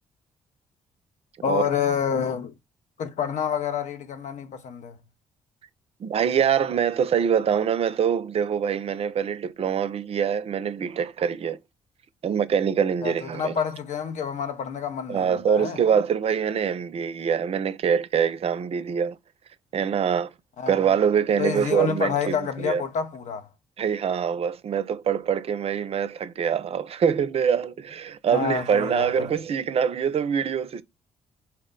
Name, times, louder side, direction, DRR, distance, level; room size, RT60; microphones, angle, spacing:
voice 1, 1.4-2.5 3.0-5.0 13.0-15.8 20.6-20.9 21.4-23.5 28.3-29.3, left 7 dB, 65° left, 0.7 m, -28 dB
voice 2, 6.0-11.6 12.2-13.5 15.1-19.2 19.7-20.3 20.7-22.8 23.8-30.8, right 7 dB, 50° right, 0.5 m, -24 dB
4.3 x 2.1 x 3.7 m
hypercardioid pair, 50°, 13 cm